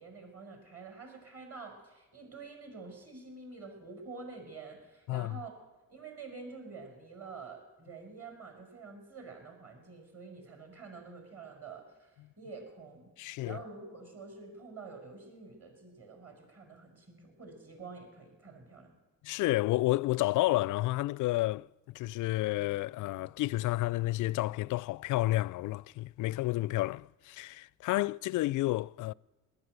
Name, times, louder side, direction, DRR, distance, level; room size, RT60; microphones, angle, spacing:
voice 1, 0.0-13.1 13.4-19.0, right 4 dB, 35° right, 5.5 m, -48 dB
voice 2, 5.1-5.4 13.2-13.6 19.2-29.1, left 18 dB, 50° left, 0.4 m, -31 dB
19.0 x 9.9 x 7.7 m
hypercardioid pair, 50°, 40 cm